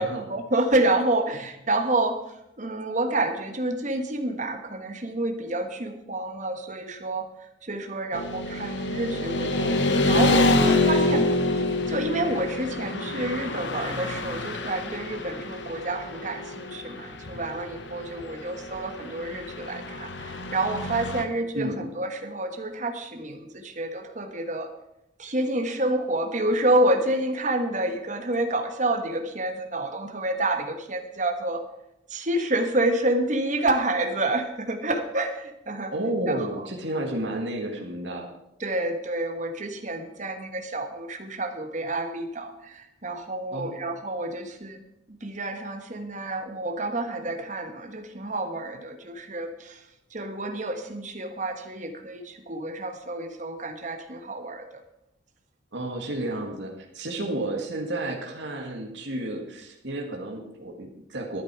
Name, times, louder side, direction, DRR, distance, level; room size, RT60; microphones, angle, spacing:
voice 1, 0.0-2.2 2.6-7.3 7.6-11.3 11.9-24.7 25.2-31.6 32.1-35.9 36.3-36.7 38.6-44.8 45.1-49.8 50.1-54.8, right 2 dB, 40° right, 6 dB, 1.4 m, -28 dB
Motorcycle / Traffic noise roadway noise, 8.1-21.2, left 2 dB, 70° left, 1.1 m, -27 dB
voice 2, 35.9-38.3 43.5-43.8 55.7-61.4, right 1 dB, 70° right, 1 dB, 1.8 m, -31 dB
12.0 x 10.5 x 4.8 m, 0.84 s
head